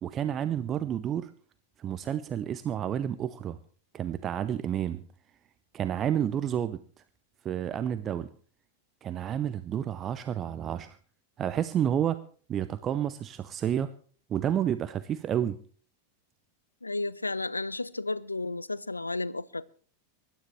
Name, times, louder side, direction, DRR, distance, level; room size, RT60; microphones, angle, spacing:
voice 1, 0.0-1.3 1.8-3.6 3.9-5.0 5.7-6.8 7.4-8.3 9.0-11.0 11.4-12.2 12.5-13.9 14.3-15.6, right 10 dB, 30° right, 0.7 m, -30 dB
voice 2, 16.8-19.7, left 2 dB, 80° left, 0.5 m, -33 dB
24.0 x 12.5 x 3.2 m
figure-of-eight pair, 90°, 0 cm